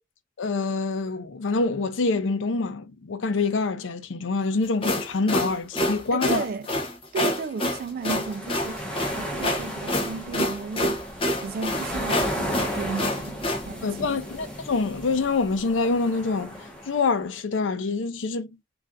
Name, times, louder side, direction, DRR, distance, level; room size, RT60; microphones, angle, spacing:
voice 1, 0.4-6.4 13.8-18.5, left 3 dB, 85° left, 0.5 m, -26 dB
sound 1, 4.6-13.6, left 1 dB, 30° left, 0.7 m, -27 dB
voice 2, 6.1-6.7 7.1-11.0 11.4-14.2, right 4 dB, 50° right, 0.3 m, -34 dB
sound 2, 7.9-17.1, equal, 5° left, 1.0 m, -35 dB
3.2 x 2.4 x 2.6 m
head